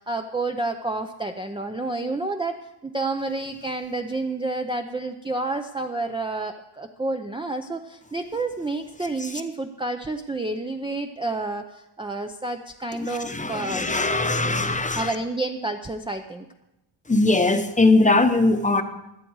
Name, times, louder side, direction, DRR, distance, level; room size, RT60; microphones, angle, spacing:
voice 1, 0.0-13.9 14.9-16.5, right 2 dB, 10° right, 4 dB, 0.6 m, -29 dB
voice 2, 13.2-15.1 17.1-18.8, left 2 dB, 15° left, 8 dB, 1.0 m, -20 dB
17.0 x 11.5 x 4.7 m, 0.91 s
wide cardioid pair, 150°, 48 cm